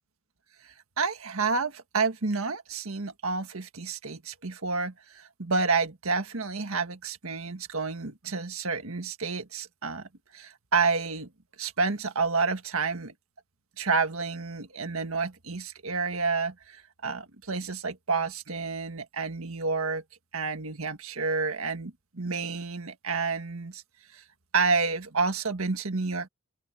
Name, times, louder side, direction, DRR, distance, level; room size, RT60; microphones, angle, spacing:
voice 1, 0.6-10.1 10.3-11.3 11.6-13.1 13.8-20.0 20.3-23.8 24.1-24.2 24.5-26.3, right 4 dB, 80° right, 1.6 m, -29 dB
open air
head